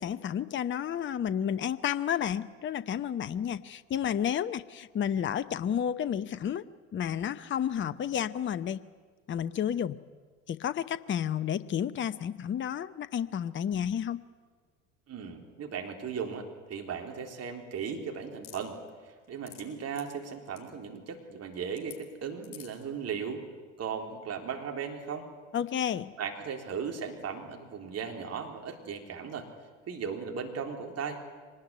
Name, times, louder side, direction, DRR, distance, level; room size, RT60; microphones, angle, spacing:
voice 1, 0.0-6.6 6.9-8.8 9.3-10.0 10.5-14.2 25.5-26.1, left 9 dB, 30° left, 15 dB, 0.8 m, -31 dB
voice 2, 15.1-18.8 19.0-23.4 23.8-25.3 26.2-29.5 29.9-31.2, right 6 dB, 35° right, 3 dB, 3.6 m, -37 dB
sound 1, 18.4-18.6 19.2-19.6 19.9-20.1 20.5-20.6 21.8-22.0 22.4-22.8, left 12 dB, 50° left, 5.5 m, -47 dB
24.0 x 20.0 x 9.6 m, 1.5 s
hypercardioid pair, 70°, 41 cm